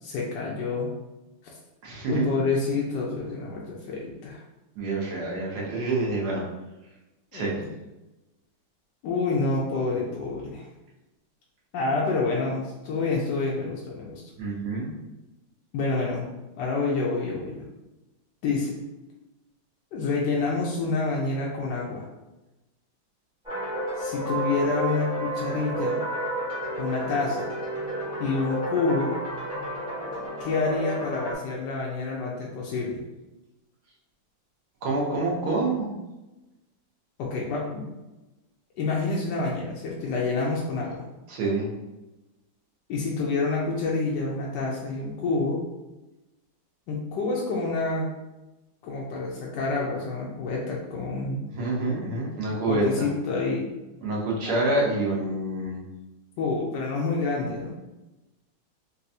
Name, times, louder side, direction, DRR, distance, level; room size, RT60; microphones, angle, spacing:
voice 1, 0.0-0.9 2.1-4.4 7.3-7.5 9.0-10.7 11.7-14.2 15.7-16.3 16.6-17.6 18.4-18.8 19.9-22.0 24.0-26.0 26.8-27.5 28.2-29.1 30.4-33.0 37.2-37.9 38.7-41.0 42.9-45.6 46.9-48.1 48.8-51.4 52.7-53.7 54.4-54.5 56.4-57.7, left 3 dB, 75° left, -4 dB, 1.1 m, -28 dB
voice 2, 1.8-2.4 4.8-6.4 7.3-7.6 14.4-15.0 34.8-35.9 41.3-41.7 51.5-53.1 54.0-55.8, right 2 dB, 60° right, -3 dB, 1.2 m, -27 dB
sound 1, 23.4-31.3, right 1 dB, 5° right, 0.6 m, -31 dB
4.1 x 2.2 x 2.6 m, 1.0 s
omnidirectional pair, 2.2 m